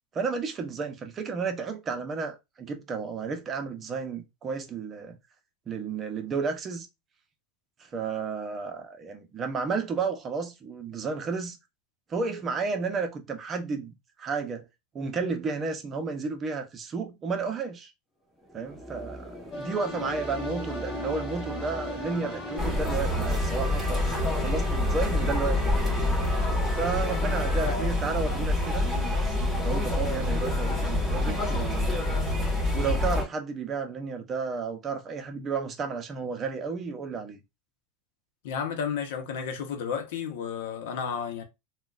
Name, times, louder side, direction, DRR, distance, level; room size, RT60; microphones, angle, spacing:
voice 1, 0.1-5.2 5.7-6.9 7.8-11.6 12.1-13.9 14.2-14.6 14.9-17.9 18.5-25.8 26.7-28.9 29.6-32.2 32.7-37.4, right 5 dB, 30° right, 0.6 m, -32 dB
sound 1, 18.4-27.8, equal, 15° left, 0.8 m, -40 dB
sound 2, 19.5-27.8, left 1 dB, 55° left, 1.3 m, -39 dB
sound 3, 22.6-33.2, left 1 dB, 5° right, 1.6 m, -26 dB
voice 2, 27.6-27.9 38.4-41.4, left 7 dB, 75° left, 0.7 m, -32 dB
3.7 x 2.2 x 2.4 m
supercardioid pair, 130°, 0 cm